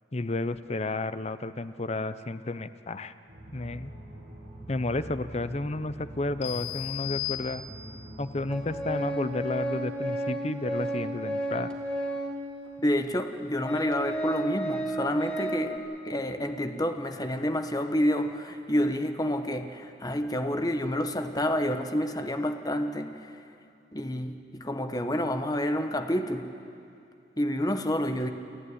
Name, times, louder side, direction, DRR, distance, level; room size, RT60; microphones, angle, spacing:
voice 1, 0.1-3.1 3.5-3.9 4.7-7.6 8.2-11.7, left 2 dB, 35° left, 13 dB, 0.7 m, -32 dB
sound 1, 3.3-8.9, right 1 dB, 65° right, 7.3 m, -45 dB
sound 2, 6.4-8.1, left 14 dB, 80° left, 2.2 m, -35 dB
Organ, 8.5-12.4 13.1-13.2 13.6-15.8, right 1 dB, 5° left, 2.2 m, -32 dB
voice 2, 12.8-15.8 16.0-23.3 23.9-26.5 27.4-28.3, equal, 20° left, 7 dB, 1.1 m, -29 dB
28.5 x 13.0 x 9.9 m, 2.5 s
head